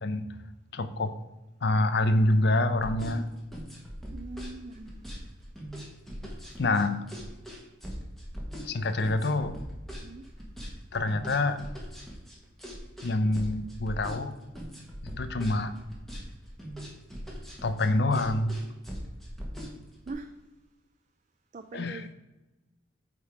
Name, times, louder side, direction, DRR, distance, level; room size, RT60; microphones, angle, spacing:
voice 1, 0.7-1.1 1.6-3.3 6.6-7.1 8.6-9.6 10.9-11.6 13.0-14.3 15.0-15.8 17.6-18.6 21.7-22.1, left 2 dB, 60° left, 11 dB, 0.5 m, -26 dB
sound 1, 2.7-20.1, equal, ahead, 1.3 m, -41 dB
voice 2, 4.1-5.1 10.0-10.2 20.1-20.3 21.5-22.1, right 3 dB, 40° right, 7 dB, 0.4 m, -41 dB
8.4 x 3.7 x 4.8 m, 1.0 s
head